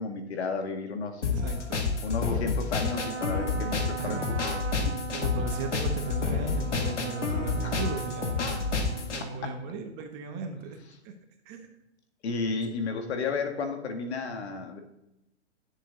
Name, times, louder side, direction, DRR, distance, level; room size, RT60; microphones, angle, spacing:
voice 1, 0.0-1.3 2.0-4.2 4.5-5.0 7.6-7.8 9.2-9.6 12.2-14.8, left 4 dB, 65° left, 6 dB, 1.7 m, -33 dB
sound 1, 1.2-9.2, left 4 dB, 85° left, 1.8 m, -29 dB
voice 2, 1.2-1.8 4.0-4.2 5.1-10.8 11.0-11.1 11.4-11.7 12.8-12.9, right 4 dB, 30° right, 5 dB, 1.3 m, -37 dB
Trumpet, 2.7-9.5, right 5 dB, 80° right, 1.4 m, -39 dB
10.0 x 7.3 x 3.9 m, 0.86 s
hypercardioid pair, 130°, 35 cm